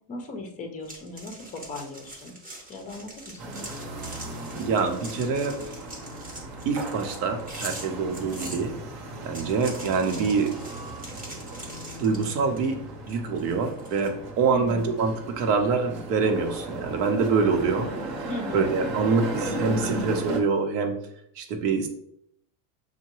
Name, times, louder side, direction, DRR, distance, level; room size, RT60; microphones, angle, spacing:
voice 1, 0.1-2.4 2.7-3.6 14.5-14.9 18.3-18.7, left 2 dB, 20° left, 4 dB, 0.4 m, -37 dB
sound 1, 0.8-8.6 9.2-12.7 13.1-14.1, right 1 dB, 20° right, 0.7 m, -43 dB
sound 2, 3.4-20.4, right 1 dB, 55° right, 0.9 m, -36 dB
voice 2, 4.5-5.8 6.6-8.8 9.2-10.5 12.0-12.8 13.1-17.9 18.2-21.0 21.4-21.9, right 4 dB, 85° right, 5 dB, 0.9 m, -25 dB
5.5 x 2.2 x 3.0 m, 0.72 s
supercardioid pair, 140°, 47 cm